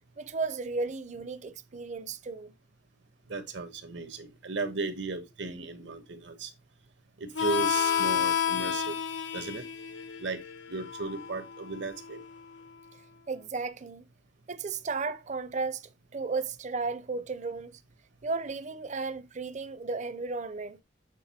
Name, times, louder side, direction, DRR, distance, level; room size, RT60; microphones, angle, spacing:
voice 1, 0.2-2.5 13.3-14.1 14.5-15.8 16.1-17.8 18.2-20.8, right 4 dB, 40° right, 0.6 m, -34 dB
voice 2, 3.3-6.5 7.2-9.0 9.3-9.6 10.2-10.4 10.7-12.2, right 3 dB, 75° right, 1.3 m, -35 dB
Harmonica, 7.3-12.6, left 8 dB, 85° left, 1.0 m, -31 dB
8.2 x 3.8 x 4.3 m
head